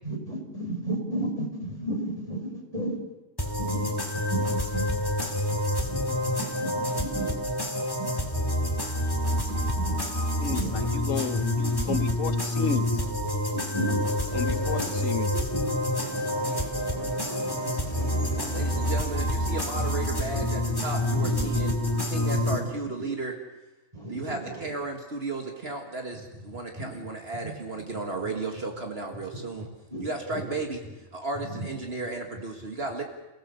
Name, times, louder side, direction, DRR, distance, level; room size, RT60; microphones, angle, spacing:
voice 1, 0.0-2.9 3.6-3.9 4.1-4.8 5.2-5.5 5.9-6.0 6.6-7.3 8.0-8.1 9.8-9.9 10.5-10.9 11.9-12.0 13.4-14.0 14.3-15.1 15.5-19.0 19.4-19.5 19.8-19.9 20.7-22.6 23.9-24.7 26.7-26.9 27.4-27.5 29.1-29.2 29.9-30.6 31.4-31.7, right 1 dB, 25° right, 0 dB, 5.0 m, -35 dB
sound 1, 3.4-22.6, left 1 dB, 15° left, 2.3 m, -28 dB
voice 2, 10.4-12.9 14.3-15.3, left 6 dB, 75° left, 11 dB, 1.4 m, -32 dB
voice 3, 18.5-21.7 22.0-23.4 24.1-29.7 30.0-30.8 31.1-33.0, right 3 dB, 50° right, 3 dB, 2.0 m, -34 dB
29.0 x 17.0 x 6.8 m, 1.0 s
omnidirectional pair, 1.4 m